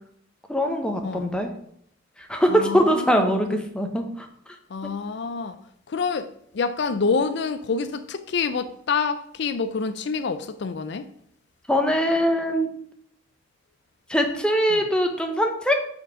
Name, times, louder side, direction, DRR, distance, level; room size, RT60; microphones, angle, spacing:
voice 1, 0.5-1.5 2.2-4.3 4.8-4.9 11.7-12.7 14.1-15.8, equal, 5° left, 0.8 m, -22 dB
voice 2, 2.5-3.6 4.7-5.6 5.9-11.1 14.7-14.9, left 5 dB, 65° left, 0.4 m, -27 dB
6.2 x 4.4 x 5.6 m
head